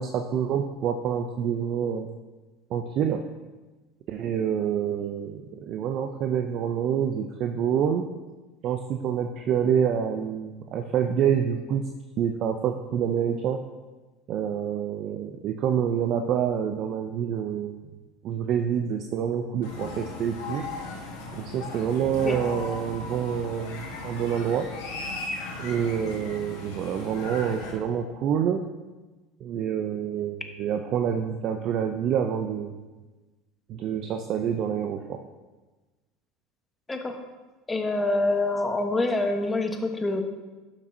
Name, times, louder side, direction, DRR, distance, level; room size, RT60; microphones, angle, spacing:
voice 1, 0.0-2.1 2.7-3.2 4.1-8.0 8.6-11.8 12.2-13.6 14.3-17.8 18.2-20.6 21.4-24.7 25.6-28.6 29.4-32.8 33.7-35.3, right 8 dB, 55° right, 5 dB, 0.5 m, -27 dB
sound 1, 19.6-27.7, left 3 dB, 85° left, 1.7 m, -37 dB
voice 2, 37.7-40.2, left 2 dB, 15° left, 4 dB, 1.2 m, -26 dB
11.5 x 6.0 x 2.8 m, 1.2 s
hypercardioid pair, 80°, 0 cm